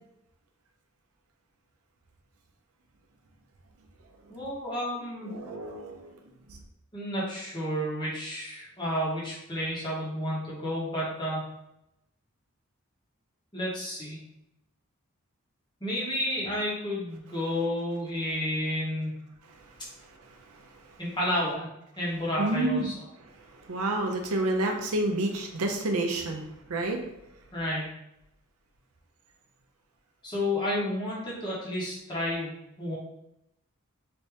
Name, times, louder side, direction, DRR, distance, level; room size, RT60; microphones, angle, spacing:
voice 1, 4.3-5.3 6.9-11.4 13.5-14.2 15.8-19.2 21.0-23.0 27.5-27.9 30.2-32.9, left 1 dB, 20° left, -6 dB, 1.1 m, -31 dB
voice 2, 5.3-6.1 6.5-6.6 22.4-22.9 23.7-26.4 26.7-27.0, right 2 dB, 80° right, 3 dB, 0.6 m, -29 dB
3.3 x 2.8 x 3.3 m, 0.83 s
head